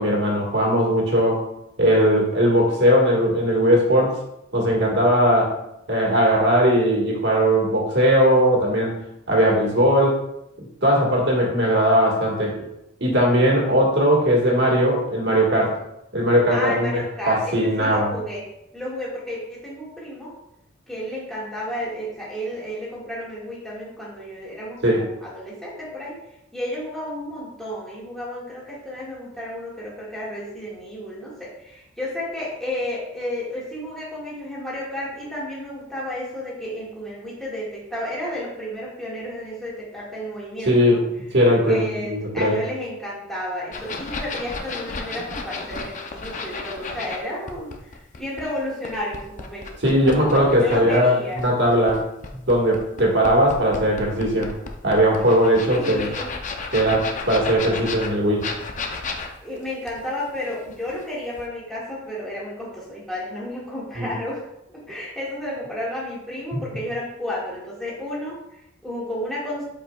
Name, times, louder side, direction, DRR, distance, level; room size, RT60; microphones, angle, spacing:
voice 1, 0.0-1.4 1.8-4.2 4.5-5.6 5.9-9.0 9.3-10.2 10.8-12.6 13.0-15.8 16.1-18.1 24.8-25.0 40.7-41.0 41.3-42.6 49.8-52.0 52.3-54.5 54.8-56.1 56.7-58.5 64.0-64.1 66.5-66.6, equal, 55° right, -2 dB, 1.7 m, -19 dB
voice 2, 16.5-18.4 18.7-20.3 20.9-26.2 26.5-41.0 41.7-49.7 49.9-51.4 55.7-56.3 59.4-64.4 64.7-69.6, left 1 dB, ahead, -7 dB, 1.8 m, -32 dB
sound 1, 43.7-47.2 47.5-51.0 51.4-61.0 61.4-61.5, left 4 dB, 40° left, 0.6 m, -33 dB
8.2 x 4.8 x 2.4 m, 0.83 s
head